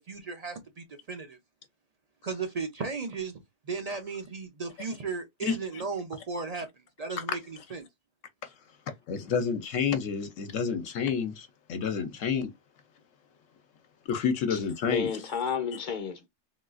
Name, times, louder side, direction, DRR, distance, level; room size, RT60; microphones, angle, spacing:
voice 1, 0.1-1.4 2.2-3.3 3.7-6.7 7.0-7.8, right 4 dB, 50° right, 0.4 m, -35 dB
voice 2, 9.1-12.5 14.1-15.2, left 6 dB, 75° left, 1.0 m, -29 dB
voice 3, 14.5-16.3, left 7 dB, 45° left, 0.7 m, -32 dB
3.7 x 2.3 x 2.4 m
omnidirectional pair, 1.4 m